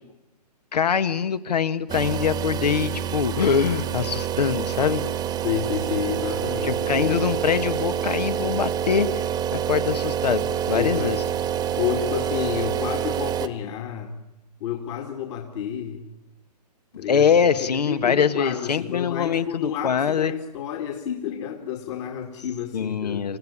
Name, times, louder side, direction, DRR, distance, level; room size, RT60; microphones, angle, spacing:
voice 1, 0.7-5.0 6.6-9.2 9.5-11.2 17.1-20.3 22.7-23.4, left 7 dB, 75° left, 12 dB, 1.5 m, -23 dB
sound 1, 1.9-13.5, right 9 dB, 20° right, 1.3 m, -27 dB
voice 2, 5.4-7.4 10.7-11.3 11.7-14.2 14.6-16.0 17.0-17.3 17.6-23.2, left 9 dB, 45° left, 3 dB, 2.3 m, -30 dB
28.5 x 16.0 x 10.0 m, 0.98 s
hypercardioid pair, 130°, 21 cm